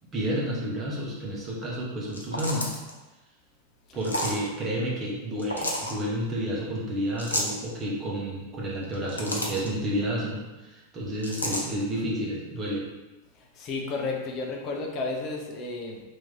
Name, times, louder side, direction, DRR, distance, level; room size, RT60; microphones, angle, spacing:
voice 1, 0.1-2.8 3.9-12.8, equal, 25° right, -4 dB, 1.0 m, -30 dB
sound 1, 2.1-2.9 4.0-4.4 5.4-5.9 7.2-7.6 8.8-9.7 11.2-11.7, left 1 dB, 80° left, 0.5 m, -30 dB
voice 2, 13.5-16.0, left 3 dB, 35° left, 1 dB, 0.6 m, -32 dB
3.0 x 2.7 x 3.6 m, 1.1 s
figure-of-eight pair, 90°, 0 cm